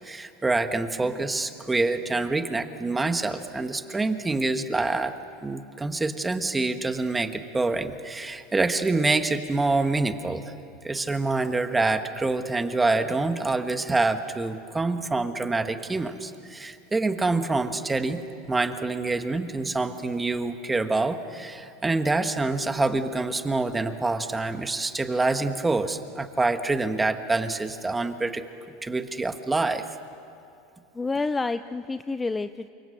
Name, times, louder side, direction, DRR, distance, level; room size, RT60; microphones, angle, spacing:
voice 1, 0.0-5.1 5.4-10.5 10.8-18.2 18.5-28.4 28.8-29.9, right 3 dB, 10° right, 8 dB, 1.5 m, -26 dB
voice 2, 30.9-32.7, left 3 dB, 15° left, 11 dB, 0.5 m, -28 dB
29.0 x 25.5 x 7.9 m, 2.6 s
supercardioid pair, 130°, 0 cm